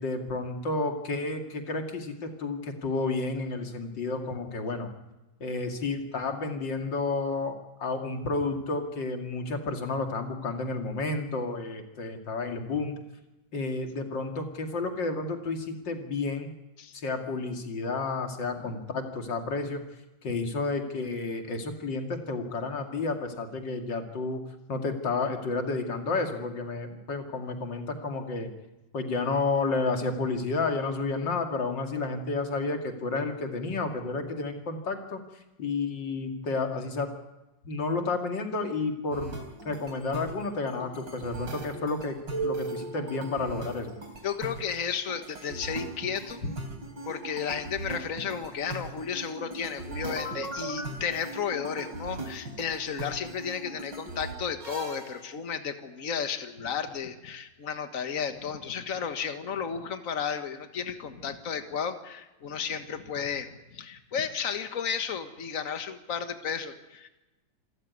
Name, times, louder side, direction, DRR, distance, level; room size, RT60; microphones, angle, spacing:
voice 1, 0.0-4.9 5.4-7.5 7.8-13.0 13.5-16.5 16.9-19.8 20.2-24.4 24.7-28.5 28.9-35.2 35.6-37.1 37.7-39.3 39.6-42.2 42.4-43.9, left 3 dB, 90° left, 4 dB, 3.1 m, -31 dB
sound 1, 39.1-55.2, right 2 dB, 85° right, 4.3 m, -39 dB
voice 2, 44.2-46.4 47.0-67.1, left 7 dB, 50° left, 8 dB, 1.9 m, -33 dB
27.0 x 14.0 x 9.6 m, 1.0 s
omnidirectional pair, 1.9 m